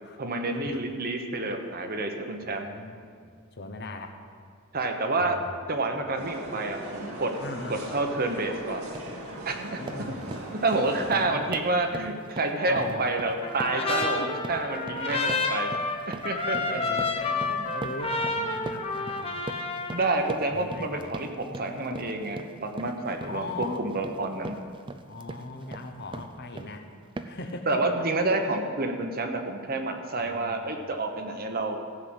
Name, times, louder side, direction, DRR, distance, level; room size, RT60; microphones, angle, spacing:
voice 1, 0.2-2.7 4.7-5.4 5.7-7.4 7.7-8.8 9.4-9.8 10.6-15.7 16.1-17.0 19.9-24.6 27.7-31.8, right 2 dB, 45° right, 4 dB, 1.0 m, -29 dB
voice 2, 2.4-4.2 5.2-5.4 7.4-7.9 8.3-8.4 8.7-8.8 9.8-10.3 11.0-11.5 12.6-13.1 14.2-14.3 15.1-15.4 16.5-19.4 20.5-21.0 21.6-22.2 23.2-23.8 25.1-26.9 27.2-27.8 30.2-30.7, left 2 dB, 50° left, 5 dB, 1.0 m, -40 dB
sound 1, 6.2-11.3, right 1 dB, 80° right, 2.0 m, -39 dB
sound 2, 8.2-8.4 8.7-9.2 9.5-26.8 27.2-27.5, right 2 dB, 25° right, 0.5 m, -41 dB
Trumpet, 13.4-20.2, left 3 dB, 25° left, 1.0 m, -30 dB
15.0 x 5.9 x 7.8 m, 2.1 s
head